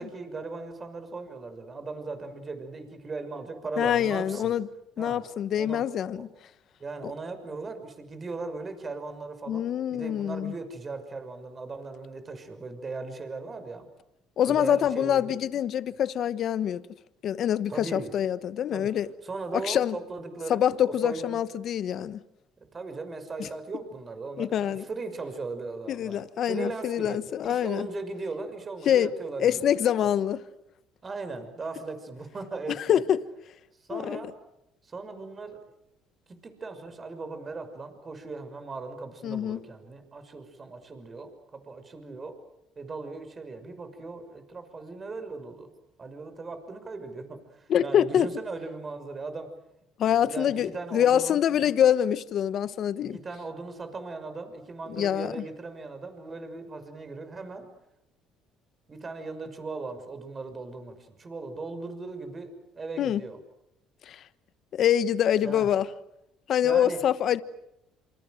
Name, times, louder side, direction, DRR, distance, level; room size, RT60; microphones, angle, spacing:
voice 1, 0.0-4.5 5.0-5.2 5.6-5.8 6.1-6.3 6.8-9.6 9.9-13.9 14.4-15.4 17.7-18.1 18.7-18.9 19.2-21.4 22.6-27.2 27.5-29.7 30.0-30.1 31.0-33.0 33.8-34.3 34.8-35.6 36.3-42.4 42.8-45.7 46.0-49.5 50.0-51.4 53.0-57.7 58.9-63.4 65.4-65.7 66.6-67.0, right 3 dB, 30° right, 6.0 m, -38 dB
voice 2, 3.8-4.7 5.0-6.3 9.5-10.5 14.4-16.8 17.2-19.1 19.5-20.0 20.5-22.2 23.4-23.5 24.4-24.8 25.9-27.9 28.9-29.1 29.4-30.4 32.7-33.2 33.9-34.3 39.2-39.6 47.7-48.3 50.0-53.2 55.0-55.4 63.0-63.2 64.1-64.2 64.7-65.9 66.5-67.4, left 10 dB, 55° left, 1.2 m, -25 dB
28.0 x 26.5 x 7.8 m
supercardioid pair, 85°, 0 cm